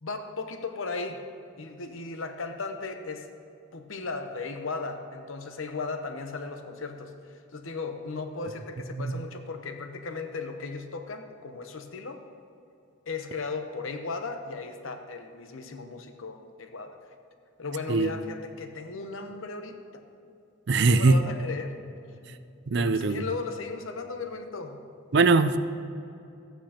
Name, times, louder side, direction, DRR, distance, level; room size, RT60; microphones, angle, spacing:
voice 1, 0.0-1.2 1.6-3.3 3.7-12.2 13.1-17.0 17.6-20.0 20.7-21.8 22.7-24.9, left 4 dB, 75° left, 6 dB, 0.9 m, -36 dB
voice 2, 20.7-21.1 22.7-23.2 25.1-25.6, right 3 dB, 55° right, 12 dB, 0.4 m, -21 dB
15.0 x 9.0 x 2.9 m, 2.6 s
head